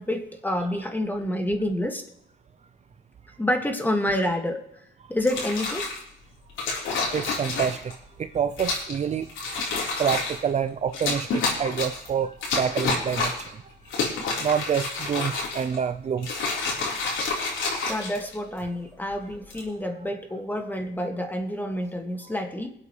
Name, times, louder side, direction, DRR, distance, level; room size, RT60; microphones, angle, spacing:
voice 1, 0.0-2.0 3.4-4.6 5.1-5.9 17.9-22.7, left 1 dB, 10° left, 4 dB, 2.0 m, -28 dB
sound 1, 5.2-6.0 6.6-7.9 8.6-9.0 9.3-10.4 10.9-12.1 12.4-13.5 13.9-15.8 16.2-18.6 19.3-19.7, left 3 dB, 80° left, 4.0 m, -29 dB
voice 2, 6.8-7.9 8.2-9.3 10.0-13.5 14.4-16.4, right 7 dB, 35° right, 10 dB, 0.5 m, -27 dB
22.5 x 8.3 x 3.2 m, 0.76 s
cardioid pair, 90°, 20 cm